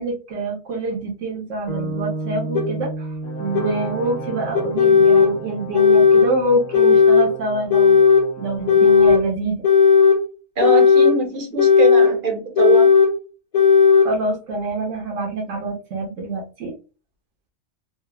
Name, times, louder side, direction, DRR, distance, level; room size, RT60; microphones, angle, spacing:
voice 1, 0.0-3.1 3.4-8.0 8.4-9.7 14.0-16.7, right 2 dB, 75° right, 1.0 m, -26 dB
sound 1, 1.7-5.9, right 2 dB, 20° left, 0.8 m, -32 dB
sound 2, 2.5-2.7 3.5-3.7 4.5-5.3 5.7-6.3 6.7-7.3 7.7-8.3 8.7-9.2 9.6-10.2 10.6-11.2 11.6-12.1 12.6-13.1 13.5-14.1, left 6 dB, 75° left, 0.3 m, -14 dB
Brass instrument, 3.2-9.0, right 3 dB, 50° left, 1.1 m, -36 dB
voice 2, 10.6-12.9, right 3 dB, 50° right, 0.7 m, -22 dB
3.2 x 2.1 x 2.2 m
omnidirectional pair, 1.3 m